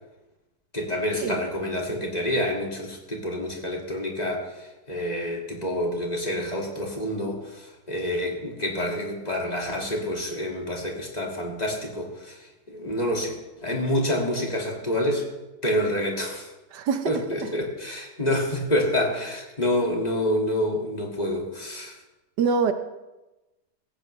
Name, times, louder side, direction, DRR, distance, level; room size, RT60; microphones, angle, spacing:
voice 1, 0.7-4.4 4.9-12.3 12.7-13.3 13.6-15.3 15.6-16.5 17.1-21.9, left 1 dB, 25° left, -1 dB, 2.3 m, -27 dB
voice 2, 16.7-17.1 17.4-17.5 22.4-22.7, right 5 dB, 85° right, 8 dB, 1.5 m, -24 dB
17.0 x 16.0 x 3.2 m, 1.1 s
omnidirectional pair, 1.8 m